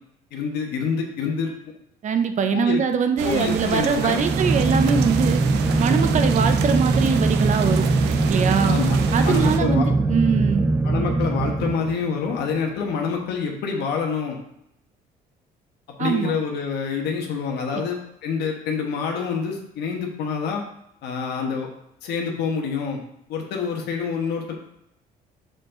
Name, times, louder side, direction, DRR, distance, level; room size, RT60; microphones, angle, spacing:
voice 1, 0.3-1.5 2.5-2.8 3.2-4.2 8.6-9.9 10.8-14.4 16.0-20.6 21.0-21.7 22.0-23.0 23.3-24.5, left 5 dB, 75° left, 1 dB, 1.3 m, -27 dB
voice 2, 2.0-5.4 5.8-7.9 8.3-8.8 9.1-10.7 16.0-16.3, right 6 dB, 45° right, 8 dB, 0.7 m, -22 dB
sound 1, 3.2-9.6, right 9 dB, 85° right, 0.6 m, -30 dB
sound 2, 3.9-12.3, right 2 dB, 15° right, 0.4 m, -21 dB
6.4 x 4.6 x 3.8 m, 0.78 s
cardioid pair, 110°, 17 cm